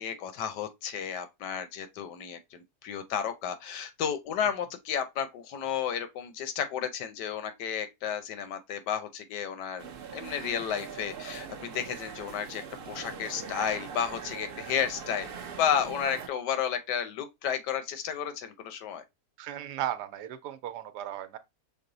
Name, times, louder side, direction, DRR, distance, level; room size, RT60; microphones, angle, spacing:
voice 1, 0.0-9.9 10.1-15.3 15.6-19.0, left 8 dB, 90° left, 1.4 m, -32 dB
sound 1, 9.8-16.3, right 6 dB, 60° right, 0.6 m, -42 dB
voice 2, 19.4-21.4, right 12 dB, 80° right, 1.2 m, -36 dB
5.8 x 2.0 x 3.8 m
omnidirectional pair, 1.8 m